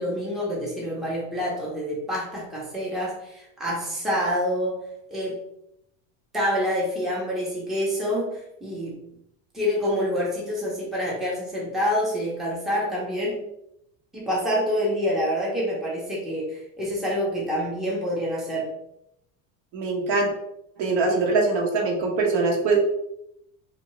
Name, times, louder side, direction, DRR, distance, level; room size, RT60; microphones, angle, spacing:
voice 1, 0.0-4.8 5.1-5.4 6.3-9.0 9.5-13.4 14.1-18.7, equal, ahead, -5 dB, 0.5 m, -27 dB
voice 2, 19.7-20.3 20.8-22.8, right 3 dB, 65° right, 0 dB, 0.9 m, -22 dB
2.7 x 2.2 x 2.9 m, 0.80 s
cardioid pair, 140°, 39 cm